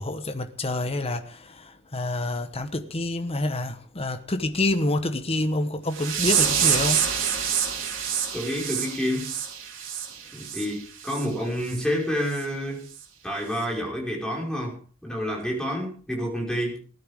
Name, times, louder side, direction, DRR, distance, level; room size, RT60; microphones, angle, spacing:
voice 1, 0.0-7.0, left 1 dB, 30° left, 1.2 m, -27 dB
sound 1, 5.9-10.7 11.0-11.3 11.7-11.8 12.3-12.4 12.9-13.0, right 8 dB, 70° right, 3.7 m, -26 dB
voice 2, 8.3-9.3 10.3-12.8 13.2-16.8, equal, 5° left, 5.4 m, -29 dB
19.5 x 13.5 x 3.7 m
head